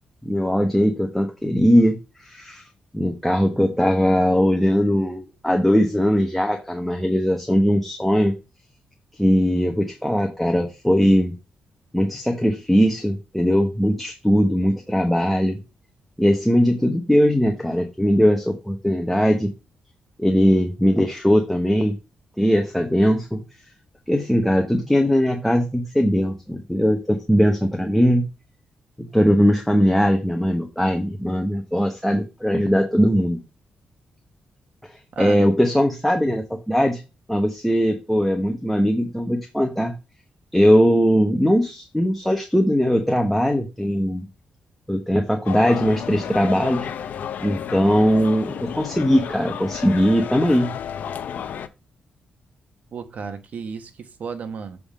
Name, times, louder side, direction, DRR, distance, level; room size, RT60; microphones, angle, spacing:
voice 1, 0.2-2.6 2.9-8.3 9.2-11.3 11.9-15.6 16.2-19.5 20.2-22.0 22.4-23.4 24.1-28.3 29.0-33.4 34.9-37.0 37.3-39.9 40.5-44.2 44.9-46.9 47.4-50.7, equal, ahead, 0.9 m, -20 dB
sound 1, 45.4-51.7, left 8 dB, 75° left, 0.6 m, -32 dB
voice 2, 52.9-54.8, right 5 dB, 60° right, 1.0 m, -33 dB
7.0 x 3.6 x 4.9 m
cardioid pair, 105°, 3 cm